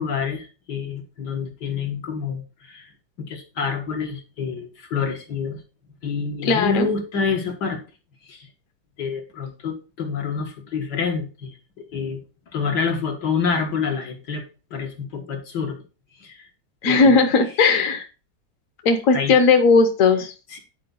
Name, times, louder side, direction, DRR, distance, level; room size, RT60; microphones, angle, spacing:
voice 1, 0.0-2.9 3.2-5.6 6.0-7.8 8.3-8.5 9.0-12.2 12.5-14.4 14.7-15.8 16.2-16.5 16.8-17.2 19.1-19.3 20.5-20.6, left 5 dB, 70° left, 2 dB, 2.0 m, -27 dB
voice 2, 6.4-6.9 16.8-18.0 18.8-20.3, left 4 dB, 50° left, 6 dB, 1.4 m, -17 dB
9.8 x 4.6 x 3.9 m, 0.33 s
omnidirectional pair, 2.0 m